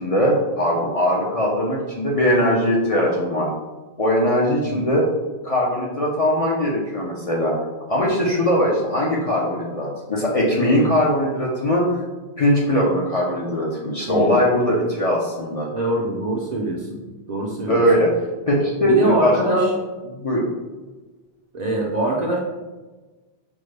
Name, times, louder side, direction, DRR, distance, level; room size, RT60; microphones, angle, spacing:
voice 1, 0.0-3.5 4.0-5.1 5.4-7.5 7.9-12.0 12.4-15.7 17.7-18.1 18.5-19.7 20.2-20.5, equal, 45° left, -4 dB, 0.5 m, -20 dB
voice 2, 14.1-14.4 15.7-17.0 17.3-17.8 18.8-19.7 21.5-22.4, right 2 dB, 55° right, -2 dB, 0.5 m, -24 dB
5.2 x 2.1 x 3.2 m, 1.2 s
omnidirectional pair, 1.1 m